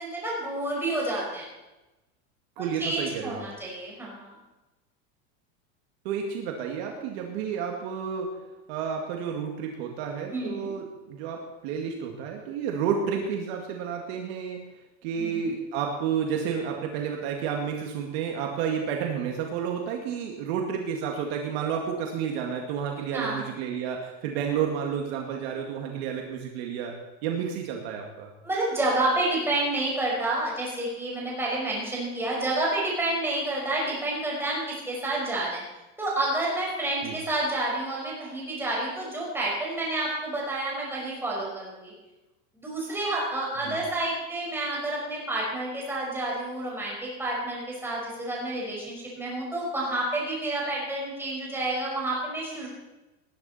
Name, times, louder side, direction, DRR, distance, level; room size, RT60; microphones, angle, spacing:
voice 1, 0.0-1.5 2.6-4.4 10.3-10.7 15.2-15.5 23.1-23.4 28.4-35.6 36.0-41.9 42.5-52.7, right 2 dB, 5° right, -4 dB, 5.2 m, -29 dB
voice 2, 2.6-3.5 6.0-8.3 8.7-14.6 15.0-26.9 27.2-28.3 37.0-37.2 43.6-43.8, right 7 dB, 60° right, 1 dB, 2.2 m, -31 dB
19.0 x 11.0 x 4.3 m, 1.0 s
supercardioid pair, 155°, 36 cm